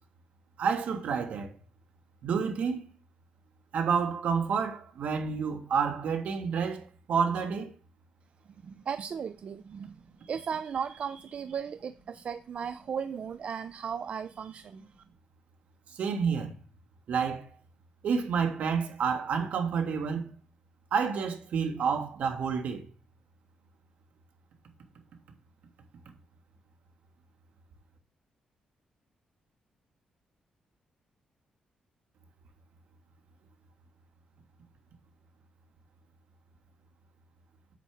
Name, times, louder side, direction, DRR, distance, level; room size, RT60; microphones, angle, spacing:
voice 1, 0.6-1.5 2.2-2.9 3.7-7.7 15.9-16.5 17.1-17.5 18.0-20.3 20.9-22.9, right 6 dB, 75° right, 1.6 m, -29 dB
voice 2, 8.6-14.9, right 7 dB, 55° right, 0.4 m, -36 dB
8.4 x 7.4 x 3.5 m
cardioid pair, 95°, 3 cm